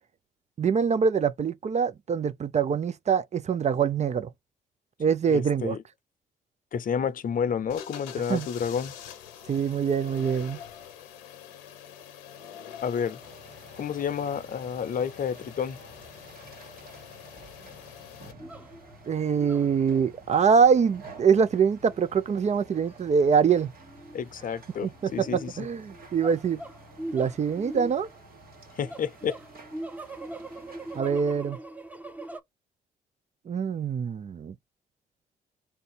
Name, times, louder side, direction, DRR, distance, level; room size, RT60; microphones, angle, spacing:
voice 1, 0.6-4.3 5.0-5.8 8.3-8.5 9.5-10.6 19.1-23.7 24.8-26.6 27.1-28.1 30.9-31.6 33.5-34.5, right 6 dB, 40° right, 0.5 m, -24 dB
voice 2, 5.3-5.8 6.7-8.9 12.8-13.2 13.8-15.8 24.1-25.7 28.8-29.4, left 7 dB, 50° left, 0.6 m, -30 dB
sound 1, 7.7-18.3, left 9 dB, 85° left, 0.7 m, -45 dB
sound 2, 13.2-31.0, right 2 dB, 55° right, 1.5 m, -51 dB
sound 3, 18.4-32.4, right 1 dB, 10° right, 0.9 m, -42 dB
3.5 x 2.6 x 4.0 m
hypercardioid pair, 45°, 18 cm